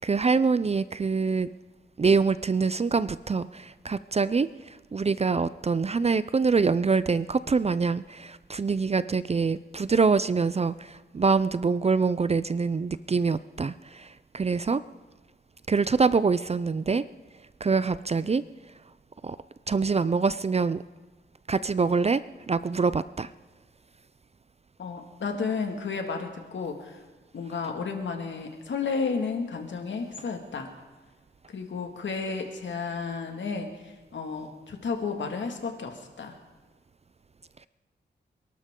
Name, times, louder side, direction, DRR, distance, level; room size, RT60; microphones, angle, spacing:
voice 1, 0.0-1.5 2.0-14.8 15.7-17.0 17.6-18.4 19.2-19.4 19.7-20.8 21.5-23.3, right 4 dB, 35° right, 15 dB, 0.5 m, -25 dB
voice 2, 24.8-27.0 27.3-30.7 31.5-36.4, left 5 dB, 80° left, 4 dB, 2.1 m, -32 dB
27.0 x 12.0 x 3.8 m, 1.3 s
cardioid pair, 65°, 19 cm